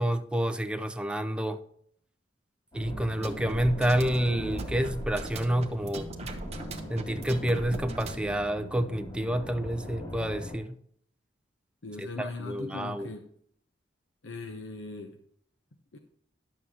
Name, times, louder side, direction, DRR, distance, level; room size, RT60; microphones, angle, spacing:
voice 1, 0.0-1.6 2.7-6.1 6.9-10.8 12.0-13.1, right 1 dB, 5° right, 0.5 m, -29 dB
sound 1, 2.7-10.6, equal, 30° left, 3.3 m, -40 dB
sound 2, 3.0-8.3, right 1 dB, 35° right, 1.0 m, -40 dB
voice 2, 11.8-13.2 14.2-15.2 15.9-16.0, left 3 dB, 85° left, 0.8 m, -39 dB
11.0 x 7.3 x 2.9 m
head